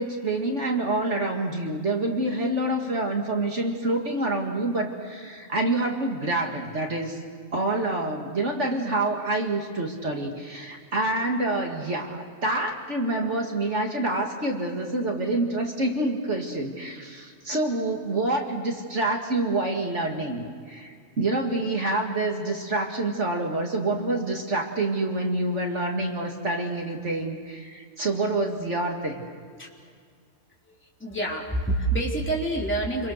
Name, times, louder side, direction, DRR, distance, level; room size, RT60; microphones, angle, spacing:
voice 1, 0.0-7.2 7.5-29.2, right 2 dB, 50° right, 1 dB, 2.5 m, -27 dB
voice 2, 30.7-33.1, right 2 dB, 10° left, -4 dB, 3.6 m, -27 dB
29.5 x 23.5 x 6.7 m, 2.1 s
omnidirectional pair, 1.5 m